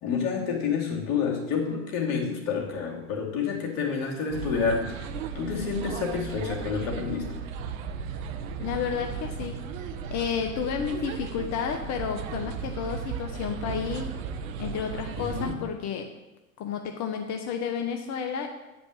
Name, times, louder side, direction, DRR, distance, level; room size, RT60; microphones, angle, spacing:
voice 1, 0.0-7.4 15.2-15.6, left 5 dB, 75° left, -1 dB, 2.8 m, -29 dB
sound 1, 4.3-15.5, right 6 dB, 65° right, 1.0 m, -35 dB
voice 2, 8.6-9.6 10.1-14.1 14.6-16.1 16.6-18.5, left 7 dB, 40° left, 5 dB, 1.0 m, -31 dB
9.1 x 5.3 x 7.3 m, 1.0 s
hypercardioid pair, 95°, 43 cm